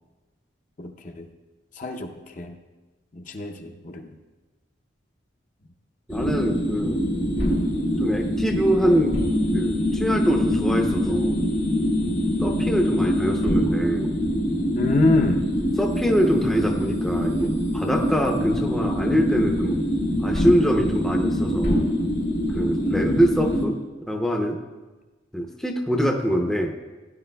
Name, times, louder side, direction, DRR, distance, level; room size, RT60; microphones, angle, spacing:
voice 1, 0.8-1.3 1.8-2.5 3.1-4.1 12.4-12.7 14.7-15.4 22.8-23.1, left 2 dB, 40° left, 4 dB, 0.7 m, -26 dB
sound 1, 6.1-23.7, equal, 80° left, 3.6 m, -24 dB
voice 2, 6.1-7.0 7.4-7.6 8.0-9.2 9.5-11.5 12.4-14.2 15.8-19.8 20.2-21.9 22.5-24.6 25.3-26.7, equal, 5° left, 1 dB, 0.6 m, -24 dB
16.5 x 9.8 x 2.3 m, 1.3 s
head